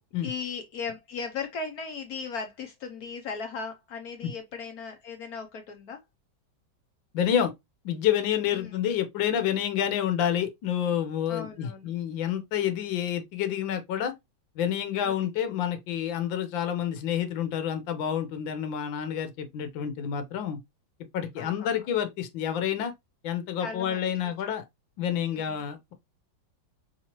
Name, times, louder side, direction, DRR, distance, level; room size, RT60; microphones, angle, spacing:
voice 1, 0.2-6.0 8.5-8.7 11.3-11.9 15.0-15.1 21.4-21.7 23.6-24.1 25.3-25.6, left 5 dB, 65° left, 1.0 m, -37 dB
voice 2, 7.1-7.5 7.8-14.1 14.6-20.6 21.1-22.9 23.2-24.6 25.0-25.9, left 9 dB, 85° left, 1.5 m, -28 dB
5.4 x 3.0 x 2.9 m
omnidirectional pair, 2.0 m